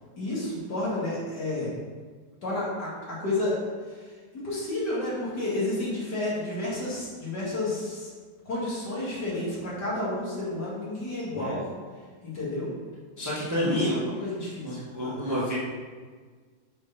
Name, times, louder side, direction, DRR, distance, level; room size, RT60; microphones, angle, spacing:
voice 1, 0.2-1.7 2.4-3.5 4.4-8.1 8.5-11.6 12.2-12.7 13.6-15.2, left 2 dB, 55° left, -7 dB, 2.7 m, -31 dB
voice 2, 13.2-14.0 14.6-15.6, equal, 10° right, -7 dB, 1.3 m, -29 dB
6.2 x 4.7 x 5.4 m, 1.6 s
omnidirectional pair, 2.1 m